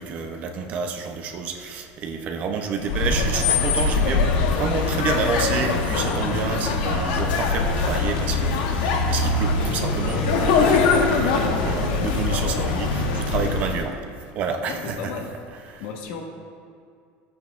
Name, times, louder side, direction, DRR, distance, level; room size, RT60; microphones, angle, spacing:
voice 1, 0.0-14.0 14.4-15.1 15.7-15.8, right 5 dB, 35° right, 4 dB, 0.7 m, -29 dB
sound 1, 2.8-13.9, left 4 dB, 85° left, 1.1 m, -22 dB
voice 2, 11.4-12.7 14.7-15.3 15.8-16.2, left 5 dB, 65° left, 2 dB, 1.4 m, -34 dB
14.5 x 8.6 x 2.5 m, 2.3 s
cardioid pair, 170°, 4 cm